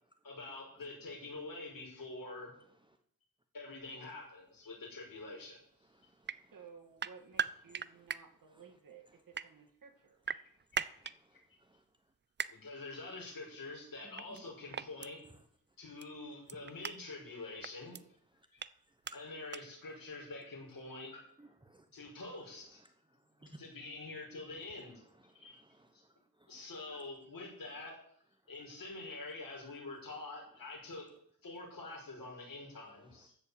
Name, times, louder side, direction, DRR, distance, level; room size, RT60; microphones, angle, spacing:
voice 1, 0.2-2.5 3.5-5.6 12.5-15.2 15.8-18.0 18.5-18.6 19.1-21.2 21.9-22.8 23.6-25.0 25.3-25.6 25.9-26.0 26.5-27.9 28.5-31.0 31.4-33.3, left 3 dB, 65° left, -3 dB, 6.0 m, -46 dB
voice 2, 2.5-3.0 5.8-6.7 7.3-8.1 8.5-8.8 9.1-9.2 10.4-12.1 14.0-15.5 16.5-16.8 18.3-18.5 18.7-19.2 21.4-23.6 24.5-27.0 27.6-27.9 28.4-28.7 30.5-30.7 32.6-33.3, right 1 dB, 15° right, 5 dB, 0.9 m, -63 dB
sound 1, 6.2-6.4 7.0-8.2 9.1-9.5 10.2-11.1 12.4-12.5 14.2-14.4 14.7-15.1 16.0-16.1 16.5-16.9 17.6-18.0 18.6-18.7 19.0-19.1 19.5-19.6, right 7 dB, 30° right, 0.4 m, -37 dB
voice 3, 6.5-10.2, right 6 dB, 60° right, 3 dB, 2.2 m, -56 dB
14.0 x 5.4 x 8.4 m, 0.65 s
wide cardioid pair, 150°, 36 cm